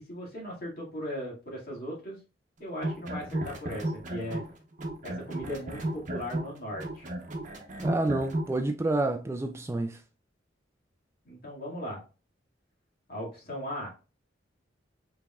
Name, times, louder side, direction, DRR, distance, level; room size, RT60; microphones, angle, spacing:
voice 1, 0.0-2.2 2.6-4.4 5.0-7.1 11.2-12.0 13.1-13.9, equal, 55° left, 2.1 m, -38 dB
sound 1, 2.7-4.5 4.8-8.5, right 1 dB, 45° right, 0.9 m, -33 dB
voice 2, 7.8-10.0, right 2 dB, 15° right, 0.3 m, -28 dB
5.0 x 3.5 x 2.3 m
head